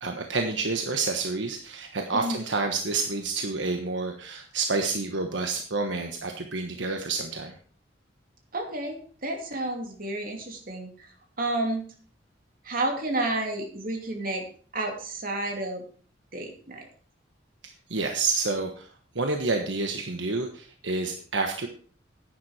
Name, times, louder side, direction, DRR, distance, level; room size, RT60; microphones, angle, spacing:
voice 1, 0.0-7.5 17.9-18.9 19.1-21.7, right 3 dB, 75° right, 4 dB, 1.3 m, -29 dB
voice 2, 2.1-2.4 8.5-11.1 11.4-11.8 12.6-14.4 14.7-15.8 16.3-16.9, right 2 dB, 50° right, 3 dB, 2.7 m, -31 dB
10.5 x 9.5 x 4.9 m, 0.43 s
head